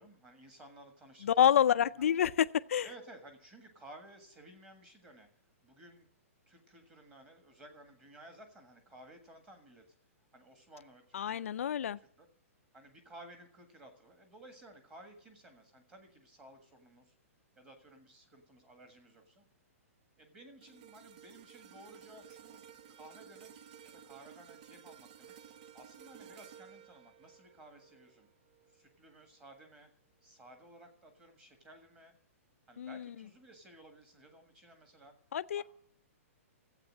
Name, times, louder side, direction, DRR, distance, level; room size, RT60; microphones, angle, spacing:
voice 1, 0.0-2.1 2.8-5.3 5.6-6.1 6.5-9.8 10.3-11.5 12.0-12.3 12.7-17.1 17.5-19.4 20.2-25.4 25.7-28.3 28.7-29.9 30.2-32.1 32.7-35.1 35.5-35.6, right 1 dB, 10° right, 1.6 m, -56 dB
voice 2, 1.2-2.9 11.1-12.0 32.8-33.1 35.3-35.6, left 9 dB, 65° left, 0.4 m, -28 dB
sound 1, 20.6-29.0 29.4-29.6, right 9 dB, 30° right, 0.5 m, -55 dB
13.0 x 8.1 x 7.5 m
hypercardioid pair, 175°, 8 cm